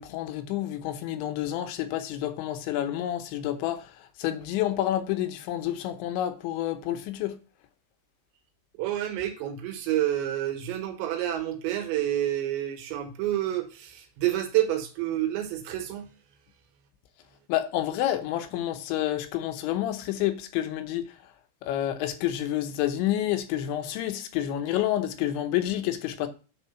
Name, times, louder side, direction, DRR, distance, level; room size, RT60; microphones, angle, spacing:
voice 1, 0.0-3.9 4.2-7.3 17.5-21.1 21.6-26.3, left 12 dB, 85° left, 3.2 m, -29 dB
voice 2, 8.8-16.1, right 12 dB, 80° right, 3.5 m, -29 dB
8.9 x 4.5 x 5.5 m
omnidirectional pair, 5.2 m